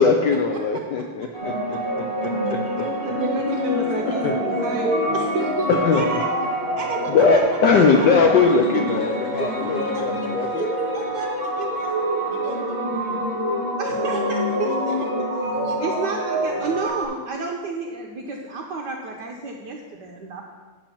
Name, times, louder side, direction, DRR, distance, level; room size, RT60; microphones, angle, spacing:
voice 1, 0.0-2.9 4.0-4.3 5.7-6.0 7.1-10.6, left 4 dB, 70° left, 3 dB, 1.0 m, -20 dB
sound 1, 1.3-16.9, right 2 dB, 20° left, 0.9 m, -32 dB
sound 2, 1.4-17.0, equal, 30° right, 1.9 m, -27 dB
voice 2, 2.2-2.5 3.9-4.3 5.9-6.3 6.8-8.1 8.9-13.2 14.1-16.0 16.8-16.9, right 2 dB, 45° right, -1 dB, 2.1 m, -35 dB
voice 3, 3.0-5.7 13.8-14.7 15.8-20.4, right 3 dB, 65° right, 1 dB, 1.1 m, -30 dB
8.8 x 4.4 x 7.0 m, 1.5 s
omnidirectional pair, 2.4 m